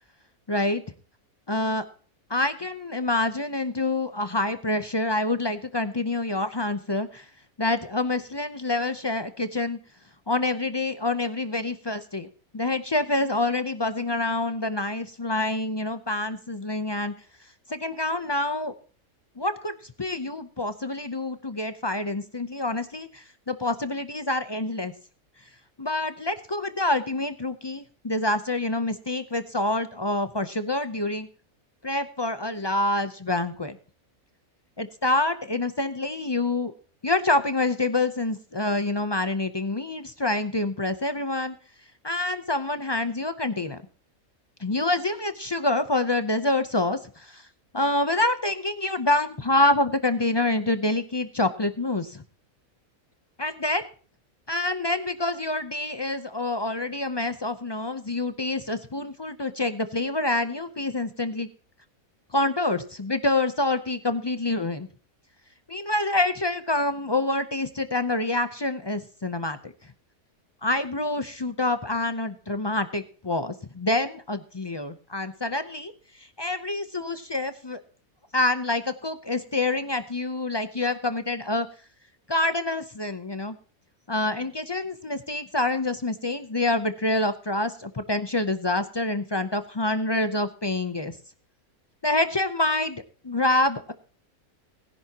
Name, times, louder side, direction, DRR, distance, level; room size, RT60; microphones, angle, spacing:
voice 1, 0.5-0.8 1.5-1.8 2.3-7.2 7.6-9.8 10.3-12.3 12.5-17.1 17.7-18.7 19.4-24.9 25.8-31.3 31.8-33.8 34.8-36.7 37.0-41.6 42.0-43.8 44.6-47.4 47.7-52.2 53.4-53.8 54.5-61.5 62.3-64.9 65.7-69.7 70.6-75.9 76.4-77.8 78.3-81.7 82.3-83.6 84.1-91.1 92.0-93.9, left 2 dB, 35° left, 10 dB, 0.4 m, -27 dB
20.0 x 10.5 x 2.9 m, 0.40 s
omnidirectional pair, 1.5 m